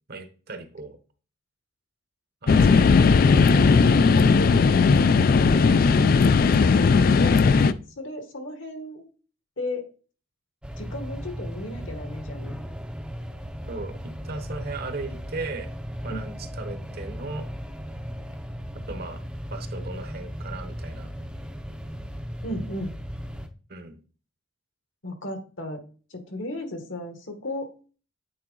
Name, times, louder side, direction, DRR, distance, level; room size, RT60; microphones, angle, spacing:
voice 1, 0.1-1.0 2.4-3.1 5.5-5.9 13.6-14.0 14.2-15.7 16.0-17.5 18.9-19.2 19.5-21.1 23.7-24.0, right 3 dB, 50° right, 8 dB, 0.9 m, -37 dB
sound 1, 2.5-7.7, left 4 dB, 45° left, 0.3 m, -17 dB
voice 2, 4.1-4.8 6.6-7.5 8.0-9.1 9.6-9.8 10.8-12.6 16.1-16.2 22.4-22.9 25.0-25.8 26.1-27.7, left 1 dB, 70° left, 6 dB, 1.5 m, -35 dB
sound 2, 10.6-23.5, equal, 5° right, 0.6 m, -36 dB
8.6 x 3.6 x 3.9 m, 0.38 s
head